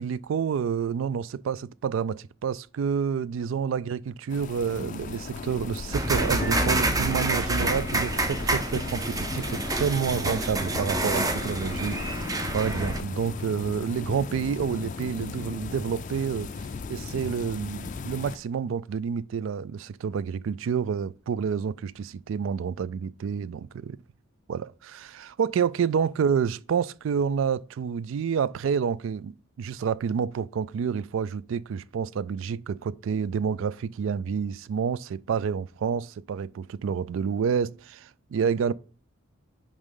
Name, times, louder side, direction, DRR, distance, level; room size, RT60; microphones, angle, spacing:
voice 1, 0.0-12.2 12.5-16.5 16.9-24.0 24.5-29.3 29.6-38.7, right 7 dB, 70° right, 0.3 m, -29 dB
sound 1, 4.3-18.4, left 4 dB, 40° left, 0.4 m, -36 dB
sound 2, 5.9-13.0, right 2 dB, 20° right, 0.6 m, -28 dB
10.0 x 3.6 x 3.7 m
head